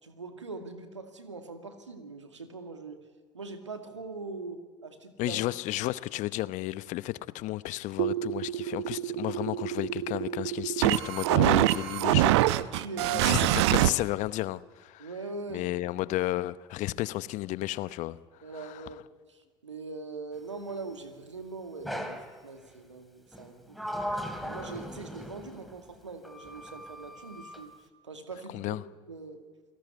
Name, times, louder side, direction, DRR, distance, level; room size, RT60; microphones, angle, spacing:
voice 1, 0.0-3.0 3.3-5.4 12.6-13.4 15.0-15.7 18.4-23.8 24.4-27.7 28.0-28.8 29.1-29.4, right 3 dB, 90° right, 2.2 m, -41 dB
voice 2, 5.2-12.4 13.1-15.1 15.5-18.2 18.5-18.9 28.5-28.8, left 17 dB, 55° left, 0.9 m, -32 dB
sound 1, 8.0-13.9, right 15 dB, 70° right, 0.8 m, -25 dB
Sliding door, 21.8-22.3 23.3-25.7 26.2-27.6, equal, ahead, 3.6 m, -38 dB
28.0 x 18.5 x 9.5 m
figure-of-eight pair, 65°, 15 cm